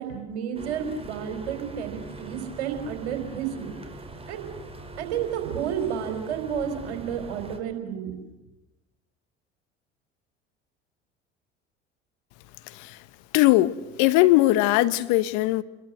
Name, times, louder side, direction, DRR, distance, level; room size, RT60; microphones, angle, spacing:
voice 1, 0.0-3.8 4.3-4.5 5.0-8.1, right 8 dB, 70° right, 4.8 m, -31 dB
sound 1, 0.5-7.6, right 2 dB, 15° right, 4.5 m, -42 dB
voice 2, 13.3-15.6, left 17 dB, 60° left, 1.2 m, -20 dB
29.0 x 21.5 x 7.9 m
figure-of-eight pair, 65°, 34 cm